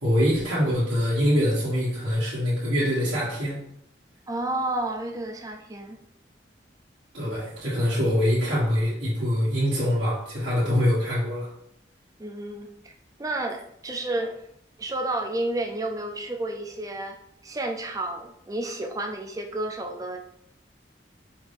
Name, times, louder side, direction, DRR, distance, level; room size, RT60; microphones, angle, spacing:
voice 1, 0.0-3.6 7.1-11.5, equal, 75° right, -11 dB, 1.5 m, -24 dB
voice 2, 4.3-6.0 12.2-12.9 13.2-14.4 14.8-17.2 17.4-20.2, right 2 dB, 20° right, 3 dB, 0.5 m, -31 dB
5.0 x 2.7 x 3.5 m, 0.73 s
head